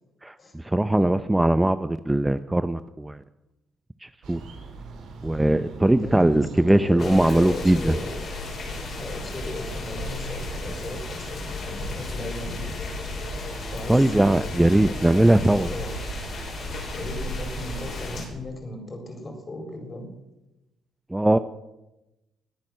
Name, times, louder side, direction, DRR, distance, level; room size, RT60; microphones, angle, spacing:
voice 1, 0.2-3.2 4.0-4.4 5.2-7.9 13.9-15.7 21.1-21.4, right 1 dB, 10° right, 12 dB, 0.6 m, -20 dB
sound 1, 4.2-18.0, right 4 dB, 85° right, 3.5 m, -40 dB
voice 2, 6.0-8.3 9.0-12.8 13.7-14.5 14.8-15.9 16.9-20.1, left 1 dB, 35° left, 4 dB, 4.7 m, -36 dB
sound 2, 7.0-18.3, left 3 dB, 55° left, 5.5 m, -34 dB
21.0 x 8.8 x 6.4 m, 0.98 s
cardioid pair, 90°, 0 cm